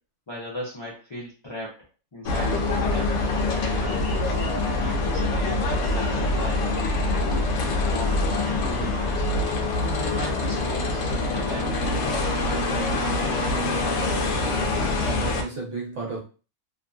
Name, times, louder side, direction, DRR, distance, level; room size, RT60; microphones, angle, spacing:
voice 1, 0.3-1.8 2.1-3.1 3.5-6.7 7.1-7.5 7.8-9.3 9.8-12.8, left 1 dB, 40° left, -6 dB, 0.4 m, -37 dB
sound 1, 2.2-15.4, left 2 dB, 65° left, 0.8 m, -25 dB
voice 2, 14.3-16.2, right 3 dB, 55° right, -3 dB, 1.1 m, -34 dB
2.8 x 2.6 x 2.3 m, 0.35 s
omnidirectional pair, 1.6 m